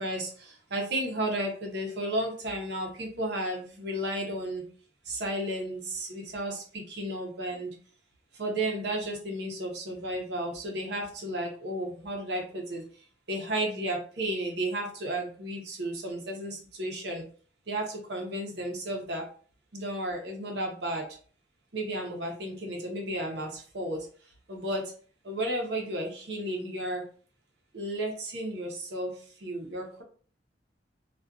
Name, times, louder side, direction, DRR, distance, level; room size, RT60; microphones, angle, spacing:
voice 1, 0.0-4.6 5.1-7.7 8.4-12.8 13.3-17.2 17.7-19.2 19.7-21.1 21.7-24.1 24.5-24.9 25.2-27.0 27.7-29.1 29.4-30.0, right 1 dB, 65° right, 1 dB, 0.8 m, -33 dB
2.5 x 2.3 x 2.3 m, 0.43 s
head